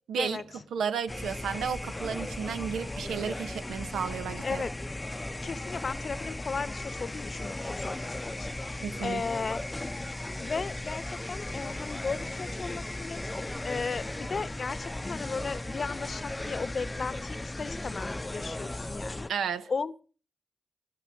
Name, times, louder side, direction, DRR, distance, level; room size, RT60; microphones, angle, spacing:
voice 1, 0.1-0.4 0.7-4.6 8.8-9.2 19.3-19.7, right 7 dB, 90° right, 0.9 m, -33 dB
sound 1, 1.1-19.3, left 1 dB, 20° left, 0.6 m, -36 dB
voice 2, 4.4-4.8 5.4-9.6 10.4-19.3 19.7-20.0, left 4 dB, 55° left, 0.8 m, -36 dB
12.0 x 11.5 x 6.4 m
cardioid pair, 55°, 0 cm